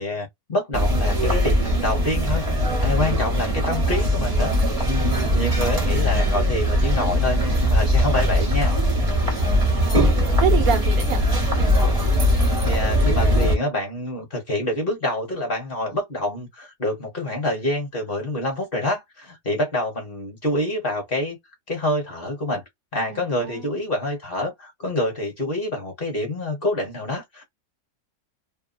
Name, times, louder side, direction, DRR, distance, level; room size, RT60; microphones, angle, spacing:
voice 1, 0.0-2.4 2.8-4.5 4.8-8.8 9.0-9.3 12.7-21.4 21.7-22.6 22.9-27.4, left 1 dB, 40° left, 1.1 m, -27 dB
sound 1, 0.7-13.5, equal, 30° right, 0.8 m, -20 dB
voice 2, 5.4-6.0 9.5-11.2 23.1-23.7, right 8 dB, 65° right, 1.1 m, -28 dB
2.8 x 2.2 x 2.5 m
omnidirectional pair, 1.7 m